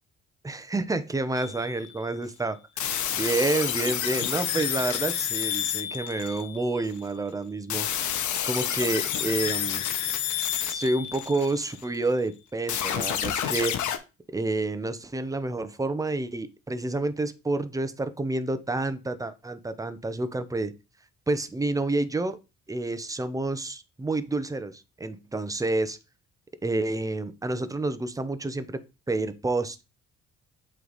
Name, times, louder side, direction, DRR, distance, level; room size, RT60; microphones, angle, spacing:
voice 1, 0.4-2.6 3.2-9.9 10.7-13.8 14.3-20.8 21.3-22.4 22.7-26.0 26.6-28.8 29.1-29.8, right 2 dB, 10° right, 12 dB, 0.7 m, -29 dB
sound 1, 1.4-1.9 2.8-7.0 7.7-12.0 12.7-14.0, left 10 dB, 75° left, 1.0 m, -29 dB
8.0 x 3.3 x 4.0 m, 0.28 s
cardioid pair, 90°, 30 cm